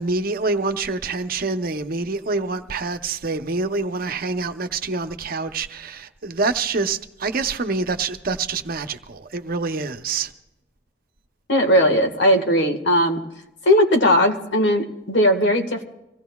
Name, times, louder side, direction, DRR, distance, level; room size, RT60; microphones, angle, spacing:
voice 1, 0.0-10.3, right 3 dB, 55° right, 8 dB, 0.8 m, -26 dB
voice 2, 11.5-13.2 13.6-15.8, equal, 85° left, 4 dB, 1.6 m, -18 dB
25.5 x 17.0 x 2.3 m, 0.98 s
head